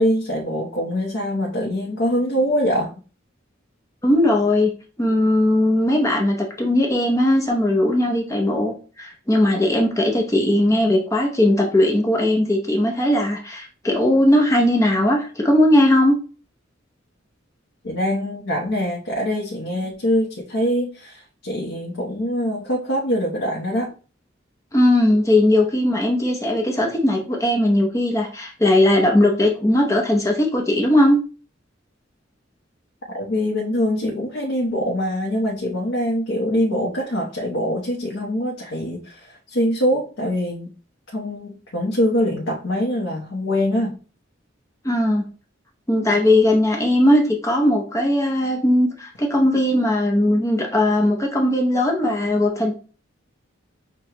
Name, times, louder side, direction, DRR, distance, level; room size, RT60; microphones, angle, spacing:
voice 1, 0.0-2.9 17.8-23.9 33.1-40.7 41.1-44.0, equal, 85° left, 0.9 m, -23 dB
voice 2, 4.0-4.7 5.0-16.2 24.7-31.2 44.8-45.2 45.9-52.7, left 1 dB, 15° left, 0.7 m, -18 dB
6.2 x 2.3 x 2.9 m
head